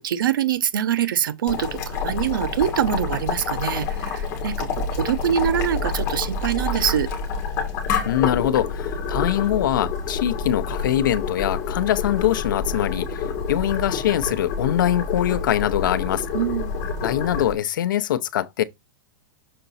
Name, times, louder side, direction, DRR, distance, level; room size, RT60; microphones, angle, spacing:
voice 1, 0.0-7.1 16.3-16.8, right 9 dB, 75° right, 0.9 m, -24 dB
Boiling, 1.5-17.5, left 5 dB, 25° left, 2.0 m, -28 dB
voice 2, 8.0-16.3 17.0-18.6, left 11 dB, 70° left, 0.7 m, -23 dB
6.7 x 3.9 x 4.1 m
supercardioid pair, 175°, 11 cm